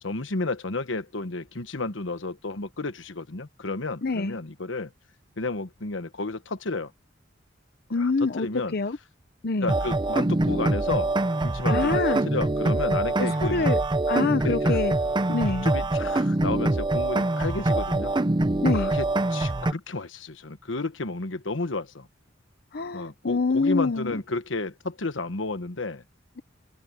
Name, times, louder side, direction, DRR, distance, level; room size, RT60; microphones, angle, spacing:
voice 1, 0.0-4.9 5.4-6.9 7.9-8.7 9.6-11.1 11.4-13.7 14.4-14.8 15.6-18.1 18.7-19.1 19.3-22.1 22.9-26.0, left 3 dB, 70° left, 1.3 m, -32 dB
voice 2, 4.0-4.4 7.9-8.5 8.7-9.0 9.4-9.7 11.7-12.2 13.2-13.8 14.1-14.9 15.3-15.7 18.6-18.9 22.7-24.2, left 3 dB, 55° left, 0.8 m, -26 dB
sound 1, 9.7-19.7, right 2 dB, 25° right, 0.7 m, -24 dB
open air
head